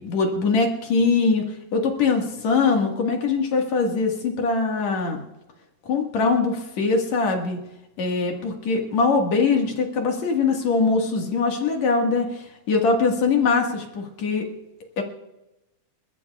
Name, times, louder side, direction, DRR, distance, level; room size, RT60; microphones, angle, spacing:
voice 1, 0.0-1.4 1.7-5.2 5.9-7.6 8.0-14.5 15.0-15.1, left 4 dB, 65° left, 2 dB, 2.9 m, -22 dB
29.0 x 14.5 x 2.4 m, 0.99 s
omnidirectional pair, 3.4 m